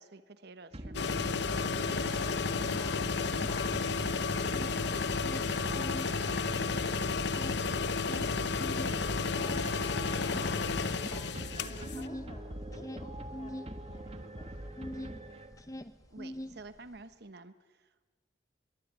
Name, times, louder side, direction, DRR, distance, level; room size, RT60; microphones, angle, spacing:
voice 1, 0.0-2.4 7.2-7.5 11.5-12.1 16.1-18.1, right 3 dB, 60° right, 11 dB, 1.2 m, -51 dB
sound 1, 0.7-15.8, right 1 dB, 35° right, 1.5 m, -43 dB
sound 2, 0.9-12.1, left 4 dB, 65° left, 0.9 m, -32 dB
sound 3, 2.7-4.0 4.3-6.2 6.5-15.2 15.5-17.0, equal, 20° left, 1.2 m, -44 dB
voice 2, 11.5-14.9, left 1 dB, 35° left, 3 dB, 2.6 m, -56 dB
23.0 x 23.0 x 9.9 m, 1.3 s
head